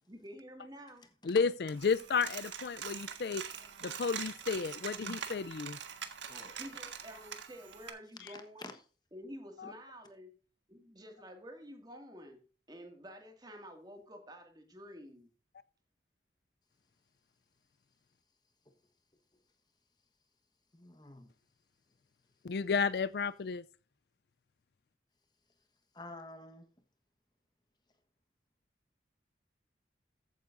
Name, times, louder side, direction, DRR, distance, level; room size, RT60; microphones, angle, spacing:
voice 1, 0.1-1.1 6.6-8.7 9.1-10.3 10.7-12.4 12.7-15.3, equal, 20° right, 2.0 m, -50 dB
voice 2, 1.2-3.4 3.8-5.8 9.6-9.7 22.4-23.6, left 5 dB, 60° left, 0.4 m, -32 dB
Coin (dropping), 1.7-7.9, right 8 dB, 85° right, 1.5 m, -44 dB
voice 3, 3.6-4.0 5.0-5.2 6.3-6.6 8.6-8.8 20.7-21.3 25.9-26.7, left 2 dB, 25° left, 1.2 m, -49 dB
14.5 x 9.1 x 2.6 m
head